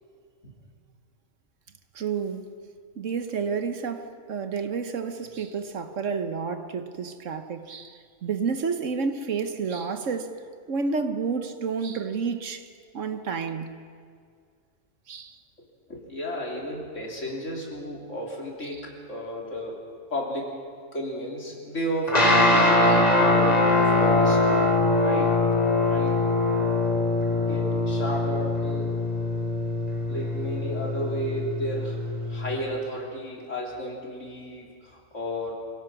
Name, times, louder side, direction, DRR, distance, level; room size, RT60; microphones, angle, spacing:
voice 1, 1.9-2.5 3.0-10.4 10.7-12.7 12.9-13.8 15.1-15.4 18.6-18.7 22.9-23.0, right 5 dB, 70° right, 1.4 m, -30 dB
voice 2, 15.9-20.6 20.9-24.7 25.0-25.3 25.9-26.3 27.3-29.0 30.1-35.5, equal, 65° left, 3.8 m, -33 dB
sound 1, 22.1-32.6, left 2 dB, 30° left, 2.6 m, -22 dB
25.5 x 17.0 x 6.0 m
omnidirectional pair, 1.4 m